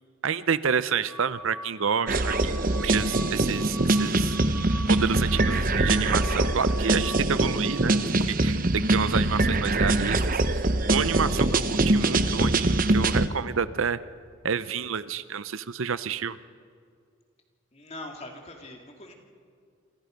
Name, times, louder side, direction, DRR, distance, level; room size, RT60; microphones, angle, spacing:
voice 1, 0.2-4.3 4.9-8.0 8.3-10.4 10.9-14.0 14.4-16.4, right 6 dB, 70° right, 15 dB, 0.6 m, -29 dB
sound 1, 1.1-8.1, equal, 5° right, 3.9 m, -43 dB
sound 2, 2.1-13.3, right 2 dB, 40° right, 0.9 m, -23 dB
voice 2, 17.7-19.1, left 1 dB, 30° left, 2 dB, 2.5 m, -42 dB
27.0 x 27.0 x 5.2 m, 2.2 s
head